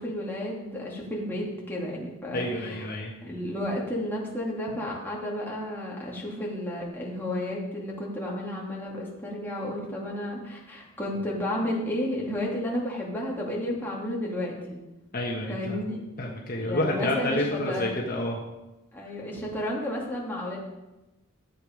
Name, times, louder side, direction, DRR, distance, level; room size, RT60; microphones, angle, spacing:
voice 1, 0.0-2.9 3.2-14.8 15.5-16.0 16.6-17.9 18.9-20.6, left 1 dB, 10° left, -4 dB, 2.3 m, -32 dB
voice 2, 2.3-3.1 15.1-15.8 16.2-18.4, left 1 dB, 40° left, -1 dB, 1.3 m, -29 dB
13.0 x 8.0 x 5.1 m, 1.0 s
head